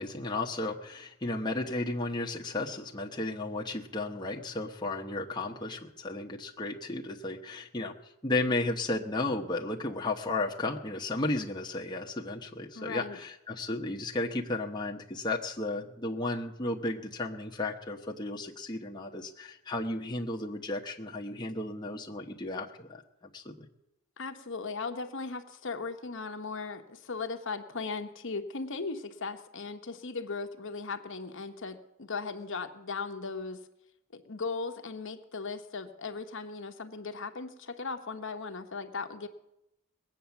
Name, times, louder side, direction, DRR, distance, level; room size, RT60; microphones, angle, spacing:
voice 1, 0.0-7.9 8.2-23.0 23.3-23.7, left 2 dB, 20° left, 0 dB, 1.0 m, -34 dB
voice 2, 12.7-13.2 24.2-33.6 34.1-39.3, left 4 dB, 55° left, 6 dB, 1.0 m, -37 dB
20.0 x 8.5 x 7.1 m, 0.87 s
head